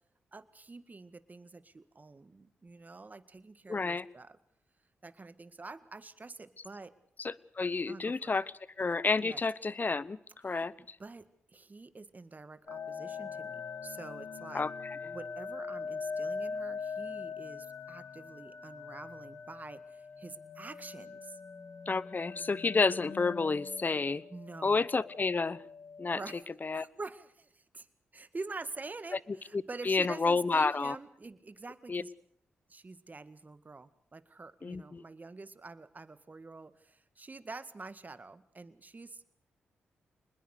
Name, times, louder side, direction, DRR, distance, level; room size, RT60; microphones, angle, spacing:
voice 1, 0.3-4.4 5.0-6.9 7.9-8.3 9.2-9.4 10.5-11.3 11.5-14.7 15.1-21.4 24.3-24.9 26.1-27.9 28.1-32.1 32.7-39.2, right 3 dB, 35° right, 12 dB, 1.9 m, -47 dB
voice 2, 3.7-4.0 7.2-8.4 8.8-10.2 10.4-10.7 14.5-14.7 21.9-24.2 24.6-25.6 26.0-26.2 26.6-26.9 29.9-31.0 31.9-32.0 34.6-35.0, left 4 dB, 40° left, 20 dB, 0.9 m, -30 dB
sound 1, 12.7-26.4, left 5 dB, 60° left, 1.6 m, -42 dB
26.0 x 20.5 x 6.7 m, 0.69 s
supercardioid pair, 40°, 5 cm